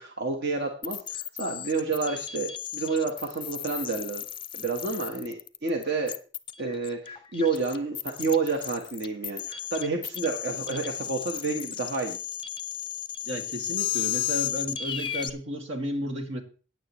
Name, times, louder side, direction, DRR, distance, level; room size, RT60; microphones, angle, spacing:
voice 1, 0.0-4.2 4.5-6.2 6.6-12.2, right 4 dB, 60° right, 2 dB, 1.3 m, -29 dB
sound 1, 0.8-15.3, left 11 dB, 25° left, 0.5 m, -34 dB
voice 2, 13.2-16.4, equal, 75° right, 4 dB, 2.3 m, -33 dB
17.0 x 9.3 x 3.1 m, 0.37 s
head